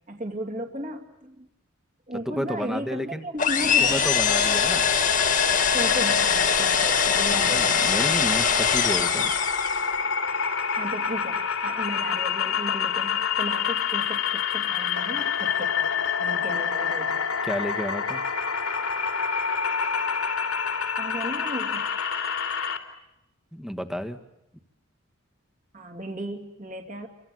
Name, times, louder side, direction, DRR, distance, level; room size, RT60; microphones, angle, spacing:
voice 1, 0.1-1.5 2.1-4.1 5.7-7.7 10.7-17.3 21.0-21.9 25.7-27.1, right 1 dB, 35° right, 4 dB, 2.6 m, -35 dB
voice 2, 2.2-3.2 3.8-4.8 7.3-9.3 17.4-18.2 23.5-24.2, equal, ahead, 8 dB, 1.5 m, -31 dB
sound 1, 3.4-9.9, left 7 dB, 40° left, 2.0 m, -23 dB
sound 2, 4.0-22.8, left 6 dB, 80° left, 3.2 m, -27 dB
29.0 x 25.0 x 7.7 m, 0.88 s
head